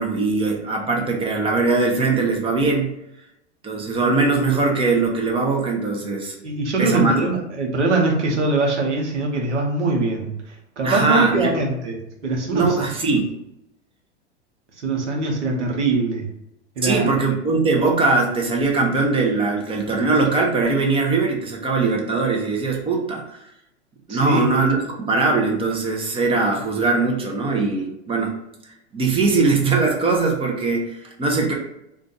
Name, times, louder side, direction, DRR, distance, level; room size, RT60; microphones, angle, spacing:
voice 1, 0.0-2.9 3.6-6.4 6.8-7.2 10.8-11.5 12.5-13.3 16.8-23.4 24.1-24.8 25.1-28.3 28.9-31.5, right 3 dB, 15° right, 0 dB, 0.7 m, -21 dB
voice 2, 6.4-10.3 10.8-12.8 13.1-13.2 14.8-16.3 16.8-17.2 24.1-24.5, right 3 dB, 85° right, 1 dB, 0.9 m, -22 dB
2.5 x 2.4 x 3.9 m, 0.81 s
hypercardioid pair, 100°, 34 cm